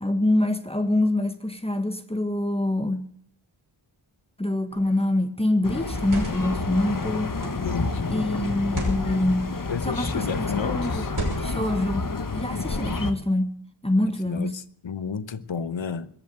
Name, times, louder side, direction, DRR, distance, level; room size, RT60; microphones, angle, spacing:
voice 1, 0.0-3.1 4.4-7.3 8.1-9.6 9.8-10.3 10.6-11.0 11.4-12.1 12.3-14.5, left 1 dB, 10° left, 1.5 m, -25 dB
sound 1, 4.7-5.0 5.8-6.6 7.4-7.7 8.6-9.0 9.9-10.3 11.1-11.7, right 2 dB, 70° right, 5.8 m, -33 dB
sound 2, 5.6-13.1, left 3 dB, 40° left, 1.3 m, -29 dB
voice 2, 7.6-8.4 9.7-11.1 14.3-16.1, left 6 dB, 65° left, 1.0 m, -32 dB
21.0 x 7.2 x 8.8 m
wide cardioid pair, 50°, 50 cm